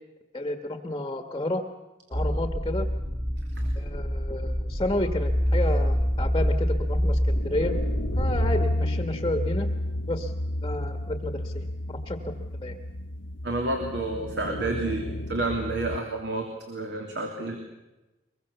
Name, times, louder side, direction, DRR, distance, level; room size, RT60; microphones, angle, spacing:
voice 1, 0.3-1.6 2.1-2.9 3.8-7.7 8.2-9.7 10.1-10.3 10.6-12.2 12.6-12.8, left 1 dB, 20° left, 7 dB, 1.4 m, -31 dB
sound 1, 2.1-8.5, equal, 35° right, 5.4 m, -26 dB
sound 2, 5.2-16.0, left 1 dB, 80° left, 1.3 m, -32 dB
voice 2, 13.4-17.6, right 2 dB, 60° right, 2 dB, 3.0 m, -30 dB
24.0 x 22.5 x 6.9 m, 1.1 s
head